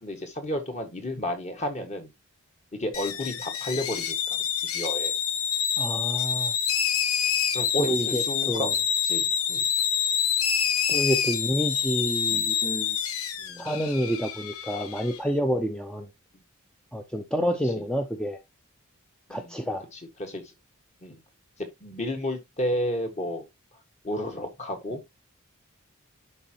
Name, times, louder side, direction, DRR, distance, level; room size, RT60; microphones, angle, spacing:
voice 1, 0.0-2.1 2.7-4.4 4.7-5.2 7.5-8.8 9.0-9.7 12.3-12.5 13.4-13.7 17.6-17.9 19.3-19.5 19.9-20.5 21.0-21.2 21.6-23.5 24.0-25.0, left 1 dB, 30° left, 1.7 m, -32 dB
sound 1, 2.9-15.2, left 8 dB, 85° left, 1.1 m, -27 dB
voice 2, 5.8-6.5 7.8-8.7 10.9-13.0 13.6-16.1 16.9-18.4 19.3-19.9, equal, 5° left, 0.7 m, -28 dB
11.0 x 4.9 x 2.9 m
head